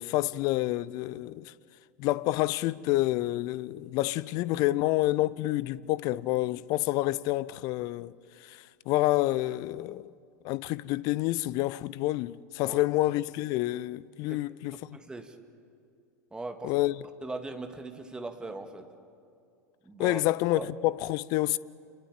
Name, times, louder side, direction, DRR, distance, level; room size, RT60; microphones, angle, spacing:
voice 1, 0.0-1.5 2.0-8.1 8.5-8.6 8.9-10.1 10.4-14.8 16.6-16.9 20.0-21.6, left 17 dB, 45° left, 0.6 m, -28 dB
voice 2, 14.9-15.4 16.3-16.7 17.2-18.9 19.8-20.2 20.6-20.7, right 2 dB, 10° right, 2.1 m, -39 dB
29.0 x 21.5 x 9.0 m
figure-of-eight pair, 85°, 9 cm